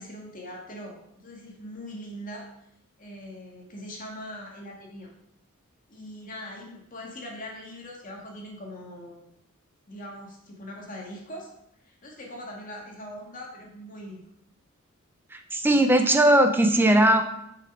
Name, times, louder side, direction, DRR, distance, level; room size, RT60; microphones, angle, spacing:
voice 1, 0.0-2.5 3.0-5.1 5.9-9.2 9.9-11.5 11.8-14.2, equal, 40° left, -1 dB, 1.9 m, -41 dB
voice 2, 15.3-17.2, right 1 dB, 10° right, 6 dB, 0.7 m, -19 dB
6.9 x 5.8 x 5.0 m, 0.78 s
head